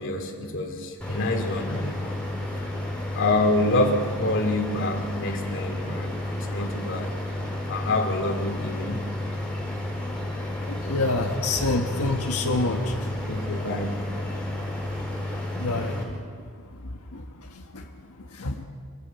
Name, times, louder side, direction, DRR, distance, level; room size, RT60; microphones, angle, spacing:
voice 1, 0.0-2.2 3.1-7.1 7.7-9.1 13.3-14.0, left 2 dB, 60° left, 4 dB, 2.6 m, -27 dB
sound 1, 1.0-16.0, left 1 dB, 5° left, 4.6 m, -31 dB
voice 2, 10.7-13.2 15.6-16.0 16.8-17.9 18.2-18.6, left 2 dB, 75° left, 2 dB, 1.5 m, -28 dB
26.5 x 13.0 x 8.3 m, 2.1 s
head